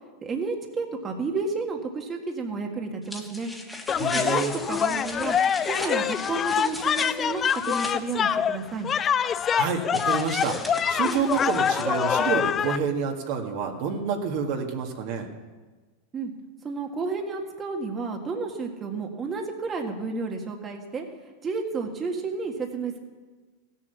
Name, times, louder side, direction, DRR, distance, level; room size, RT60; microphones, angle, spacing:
voice 1, 0.2-3.5 4.1-5.4 5.6-8.9 16.1-16.3 16.6-23.0, right 4 dB, 25° right, 2 dB, 1.6 m, -31 dB
sound 1, 3.0-8.0 9.9-11.8, left 1 dB, 5° left, 1.8 m, -38 dB
sound 2, 3.9-12.8, left 8 dB, 30° left, 0.4 m, -25 dB
voice 2, 4.0-4.5 9.5-15.3, right 6 dB, 60° right, 2 dB, 1.8 m, -28 dB
16.0 x 7.5 x 7.0 m, 1.4 s
hypercardioid pair, 100°, 0 cm